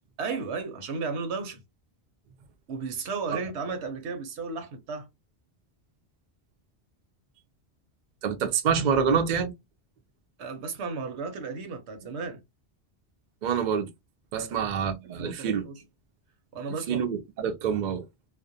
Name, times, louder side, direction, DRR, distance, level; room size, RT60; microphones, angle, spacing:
voice 1, 0.2-1.6 2.7-5.1 10.4-12.4 14.4-14.6 15.1-15.8 16.5-17.1, right 4 dB, 80° right, 1.0 m, -34 dB
voice 2, 8.2-9.5 13.4-13.9 14.3-15.6 16.9-18.0, right 7 dB, 55° right, 0.5 m, -26 dB
2.4 x 2.0 x 2.5 m
omnidirectional pair, 1.1 m